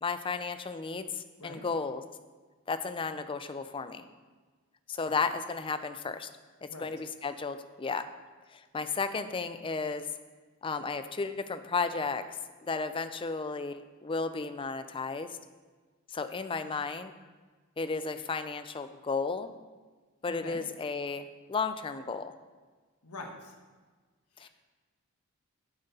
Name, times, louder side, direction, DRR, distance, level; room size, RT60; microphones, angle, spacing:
voice 1, 0.0-2.0 2.7-4.0 4.9-6.3 6.6-8.1 8.5-10.1 10.6-12.4 12.7-15.4 16.1-17.1 17.8-19.5 20.2-22.3 24.4-24.5, left 4 dB, 25° left, 11 dB, 0.4 m, -34 dB
voice 2, 20.3-20.6 23.0-23.5 24.3-24.5, left 3 dB, 80° left, 2 dB, 1.2 m, -44 dB
8.8 x 7.9 x 4.1 m, 1.4 s
head